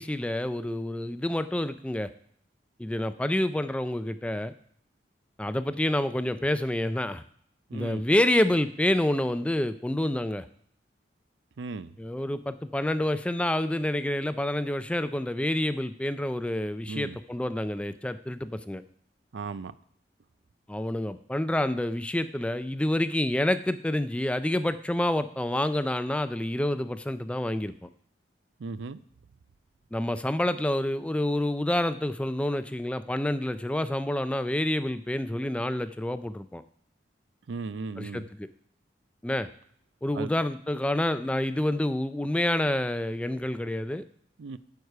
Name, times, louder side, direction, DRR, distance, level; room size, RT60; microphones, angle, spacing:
voice 1, 0.0-2.1 2.8-4.5 5.4-7.2 7.7-10.4 12.0-18.8 20.7-27.9 29.9-36.6 38.0-38.5 39.2-39.5 40.0-44.0, left 1 dB, 5° left, 12 dB, 0.3 m, -28 dB
voice 2, 7.7-8.0 11.6-11.9 16.9-17.2 19.3-19.7 28.6-29.0 37.5-38.2 40.1-40.3 44.4-44.6, right 4 dB, 85° right, 15 dB, 0.5 m, -36 dB
9.4 x 4.8 x 6.5 m, 0.62 s
head